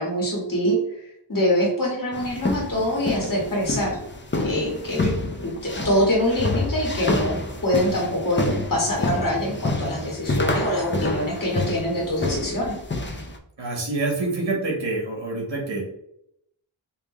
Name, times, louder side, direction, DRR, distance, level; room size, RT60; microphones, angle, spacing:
voice 1, 0.0-4.0 4.4-5.0 5.4-12.7, equal, 45° left, -4 dB, 1.5 m, -24 dB
sound 1, 2.1-13.4, left 2 dB, 25° left, 0.6 m, -28 dB
voice 2, 13.6-15.8, right 2 dB, 65° right, -1 dB, 1.3 m, -26 dB
3.7 x 2.8 x 3.1 m, 0.74 s
wide cardioid pair, 45°, 46 cm